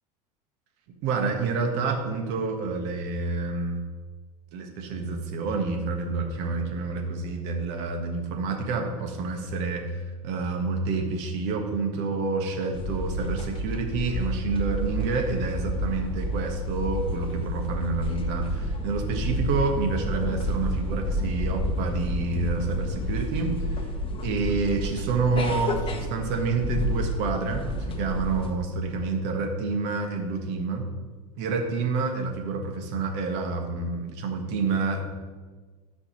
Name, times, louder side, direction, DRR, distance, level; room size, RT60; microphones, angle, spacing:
voice 1, 1.0-3.8 4.5-9.8 10.2-23.8 24.2-30.8 31.4-35.2, right 4 dB, 60° right, 3 dB, 1.6 m, -28 dB
sound 1, 12.7-28.5, equal, 25° left, 1.1 m, -30 dB
14.0 x 5.2 x 3.2 m, 1.4 s
hypercardioid pair, 90°, 20 cm